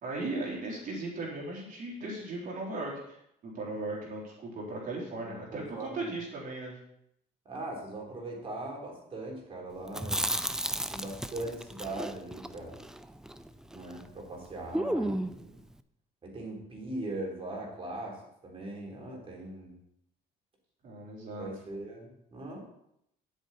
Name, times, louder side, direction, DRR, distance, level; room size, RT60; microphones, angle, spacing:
voice 1, 0.0-3.2 3.4-6.8 20.8-21.5, right 2 dB, 50° right, -3 dB, 4.0 m, -37 dB
voice 2, 5.2-6.1 7.5-10.3 10.9-12.8 13.7-15.5 16.2-18.2 18.4-19.8 21.4-22.6, right 2 dB, 35° right, -1 dB, 3.8 m, -40 dB
Chewing mastication, 9.9-14.1 14.3-14.4 14.7-15.5, right 1 dB, 5° right, 0.5 m, -33 dB
10.0 x 8.2 x 4.3 m, 0.76 s
cardioid pair, 110°, 17 cm